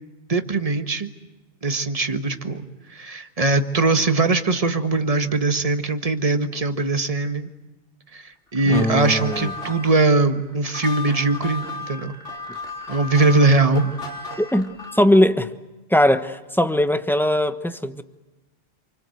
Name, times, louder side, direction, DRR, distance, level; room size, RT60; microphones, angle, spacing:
voice 1, 0.3-1.1 1.6-7.5 8.1-12.1 12.9-13.9, right 3 dB, 30° right, 1.6 m, -21 dB
sound 1, 8.6-15.1, left 2 dB, 80° left, 4.5 m, -35 dB
voice 2, 8.6-9.5 14.4-15.5 15.9-18.0, left 1 dB, ahead, 1.1 m, -20 dB
28.5 x 25.5 x 7.9 m
omnidirectional pair, 1.2 m